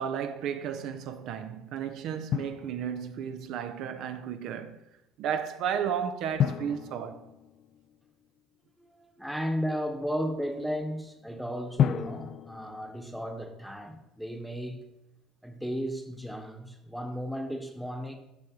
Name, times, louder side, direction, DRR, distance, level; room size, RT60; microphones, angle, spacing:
voice 1, 0.0-4.8 5.2-7.3, right 8 dB, 65° right, 0.4 m, -33 dB
Drum, 2.3-3.4 6.4-8.2 11.8-13.8, left 9 dB, 55° left, 0.3 m, -32 dB
voice 2, 8.8-14.9 15.4-18.2, equal, ahead, 1.0 m, -34 dB
5.8 x 5.7 x 3.7 m
hypercardioid pair, 65°, 0 cm